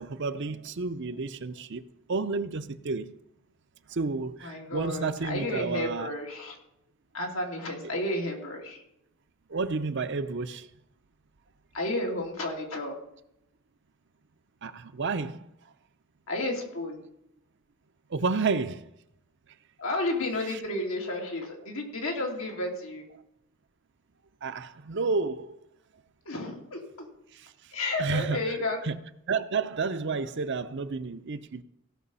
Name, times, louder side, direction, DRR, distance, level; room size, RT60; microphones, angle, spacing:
voice 1, 0.0-1.8 2.1-3.1 3.9-6.1 7.9-8.0 9.5-10.7 14.6-15.4 18.1-18.8 20.5-20.6 24.4-25.6 27.4-27.5 28.0-28.4 28.8-29.0 29.3-31.6, right 4 dB, 60° right, 11 dB, 0.7 m, -30 dB
voice 2, 4.4-6.6 7.1-8.8 11.7-13.0 16.3-17.0 19.8-23.0 26.3-27.1 27.7-28.8, left 2 dB, 85° left, 0 dB, 2.8 m, -32 dB
16.5 x 6.0 x 5.5 m, 0.79 s
head